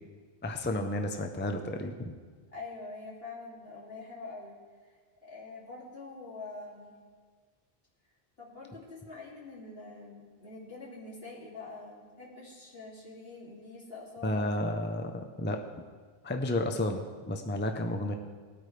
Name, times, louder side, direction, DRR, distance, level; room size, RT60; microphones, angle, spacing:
voice 1, 0.4-2.1 14.2-15.6 16.2-18.1, left 1 dB, 15° left, 5 dB, 0.6 m, -32 dB
voice 2, 2.5-4.6 5.2-6.9 8.4-14.5, left 3 dB, 70° left, -6 dB, 3.0 m, -45 dB
19.0 x 9.0 x 3.3 m, 1.5 s
omnidirectional pair, 1.1 m